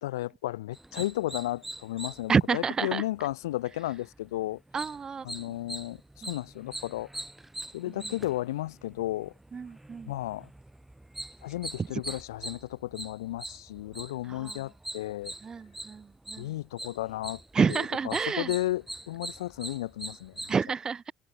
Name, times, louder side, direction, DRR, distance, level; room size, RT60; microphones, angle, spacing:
voice 1, 0.0-4.6 5.2-7.1 7.7-9.3 10.1-10.5 11.4-15.3 16.4-17.4 17.7-20.5, left 15 dB, 85° left, 2.5 m, -34 dB
sound 1, 0.7-20.5, right 1 dB, 10° right, 7.3 m, -43 dB
voice 2, 2.3-3.0 4.7-5.2 9.5-10.1 14.3-14.5 15.4-16.5 17.5-18.5 20.5-21.1, right 5 dB, 35° right, 1.6 m, -28 dB
hypercardioid pair, 65°, 2 cm